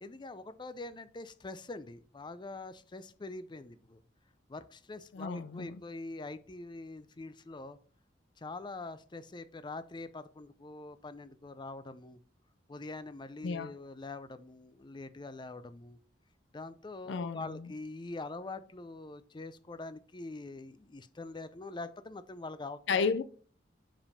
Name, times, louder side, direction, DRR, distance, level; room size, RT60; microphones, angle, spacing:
voice 1, 0.0-4.0 4.5-7.8 8.4-12.2 12.7-16.0 16.5-23.0, left 2 dB, 25° left, 0.5 m, -44 dB
voice 2, 5.1-5.8 13.4-13.7 17.1-17.7 22.9-23.2, left 5 dB, 85° left, 0.4 m, -32 dB
5.3 x 5.1 x 5.4 m
head